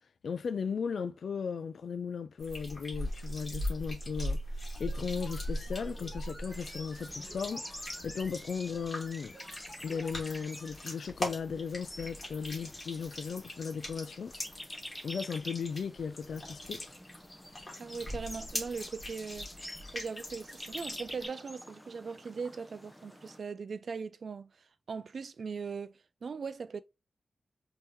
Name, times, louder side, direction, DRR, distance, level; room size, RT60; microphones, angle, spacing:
voice 1, 0.2-4.4 4.8-7.7 8.0-9.4 9.8-14.3 15.0-16.9, left 6 dB, 80° left, 0.5 m, -36 dB
sound 1, 2.4-21.3, left 1 dB, 30° left, 2.4 m, -41 dB
sound 2, 4.8-10.8 11.1-11.2, right 1 dB, 15° right, 1.9 m, -52 dB
sound 3, 6.5-23.4, left 1 dB, 10° left, 0.7 m, -48 dB
voice 2, 17.8-19.5 19.9-26.8, right 5 dB, 65° right, 0.4 m, -40 dB
5.5 x 3.0 x 2.7 m
wide cardioid pair, 105°, 0 cm